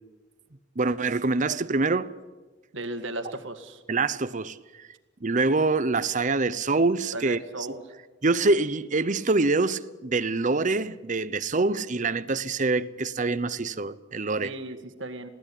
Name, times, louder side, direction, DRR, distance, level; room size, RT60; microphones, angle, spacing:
voice 1, 0.8-2.1 3.9-4.9 5.2-7.4 8.2-14.5, right 3 dB, 40° right, 0.8 m, -25 dB
voice 2, 2.7-3.8 7.1-7.8 14.4-15.3, right 1 dB, 75° right, 1.9 m, -36 dB
21.0 x 16.0 x 10.0 m
head